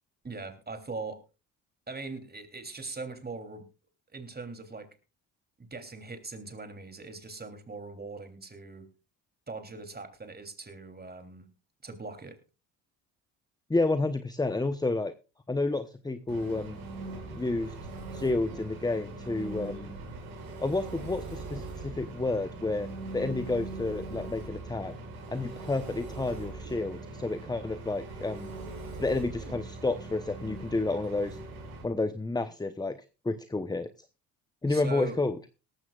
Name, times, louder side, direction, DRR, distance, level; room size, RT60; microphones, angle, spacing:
voice 1, 0.2-1.2 1.9-3.7 4.1-4.9 5.6-8.9 9.5-11.5 11.8-12.4 34.7-35.2, right 3 dB, 20° right, 7 dB, 3.2 m, -41 dB
voice 2, 13.7-15.1 15.5-16.8 17.3-17.7 18.1-20.0 20.6-22.9 23.1-24.9 25.3-28.5 29.0-31.4 31.8-33.0 33.2-33.9 34.6-35.4, left 2 dB, 10° left, 12 dB, 0.9 m, -30 dB
Engine, 16.3-31.8, right 2 dB, 85° right, 5.8 m, -41 dB
18.5 x 14.5 x 2.4 m, 0.30 s
hypercardioid pair, 65°, 42 cm